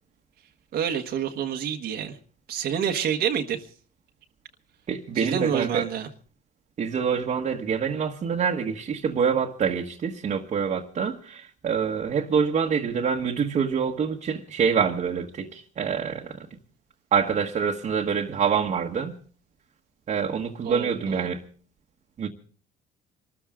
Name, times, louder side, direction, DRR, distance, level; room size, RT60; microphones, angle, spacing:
voice 1, 0.7-2.2 2.5-3.6 5.1-6.1 20.6-21.3, right 8 dB, 65° right, 1.4 m, -28 dB
voice 2, 4.9-5.8 6.8-16.5 17.1-19.1 20.1-21.4 22.2-22.3, right 6 dB, 45° right, 1.4 m, -26 dB
24.5 x 13.5 x 3.7 m
cardioid pair, 110°, 17 cm